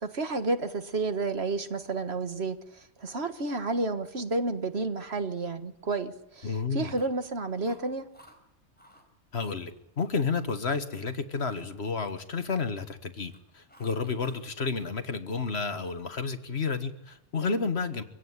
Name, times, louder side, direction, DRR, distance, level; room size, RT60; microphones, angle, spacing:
voice 1, 0.0-8.1 17.4-17.6, right 3 dB, 55° right, 9 dB, 1.8 m, -31 dB
voice 2, 6.4-6.9 9.3-18.0, left 4 dB, 55° left, 9 dB, 1.7 m, -31 dB
Chewing mastication, 6.8-7.3 7.6-8.4 8.8-9.1 9.4-10.2 10.6-10.9 11.3-12.9 13.2-14.5 14.8-16.1, equal, 5° left, 4.4 m, -58 dB
25.0 x 17.0 x 9.8 m, 0.84 s
omnidirectional pair, 1.3 m